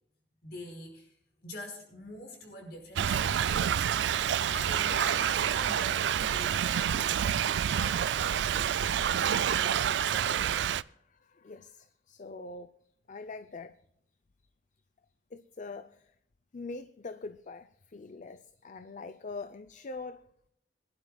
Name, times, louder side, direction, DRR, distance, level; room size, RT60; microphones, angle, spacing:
voice 1, 0.4-1.2 1.4-3.6 4.2-7.3 7.7-8.6 9.3-10.7, left 1 dB, 65° left, 2 dB, 5.3 m, -45 dB
Thunder / Rain, 3.0-10.8, right 9 dB, 75° right, 0.4 m, -28 dB
voice 2, 10.9-12.7 13.1-13.8 15.3-16.1 16.5-20.2, left 3 dB, 45° left, 11 dB, 0.5 m, -43 dB
22.5 x 11.5 x 2.3 m, 0.72 s
head